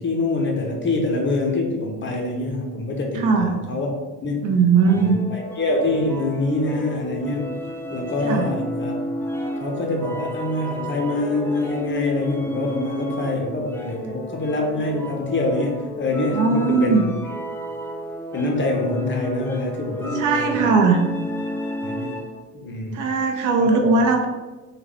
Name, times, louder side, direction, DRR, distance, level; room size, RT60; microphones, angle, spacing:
voice 1, 0.0-3.9 4.2-4.5 4.9-7.6 7.9-9.0 9.6-17.0 18.3-20.6 21.8-22.2 22.5-23.0 23.6-23.9, left 2 dB, 30° left, 1 dB, 0.7 m, -25 dB
voice 2, 3.1-3.5 4.4-5.2 8.2-8.5 14.0-14.2 16.3-17.0 20.1-21.0 22.9-24.3, right 4 dB, 55° right, 3 dB, 0.7 m, -19 dB
sound 1, 4.8-22.5, right 1 dB, 5° left, 0.3 m, -31 dB
3.3 x 2.3 x 3.4 m, 1.2 s
supercardioid pair, 80°, 38 cm